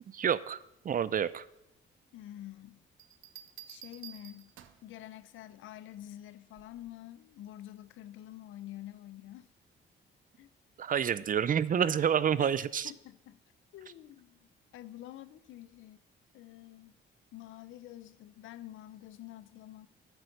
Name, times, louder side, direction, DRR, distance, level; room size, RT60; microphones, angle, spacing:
voice 1, 0.1-0.6 0.8-1.5 10.8-12.9, right 8 dB, 45° right, 18 dB, 0.5 m, -28 dB
voice 2, 2.1-2.8 3.7-4.5 4.8-9.5 10.4-10.5 12.4-12.5 12.8-13.4 13.7-16.0 16.3-17.0 17.3-19.9, left 13 dB, 85° left, 16 dB, 0.7 m, -48 dB
sound 1, 3.0-4.9 6.6-6.9, right 11 dB, 75° right, 0.9 m, -51 dB
9.1 x 8.3 x 6.7 m, 0.84 s
cardioid pair, 90°, 20 cm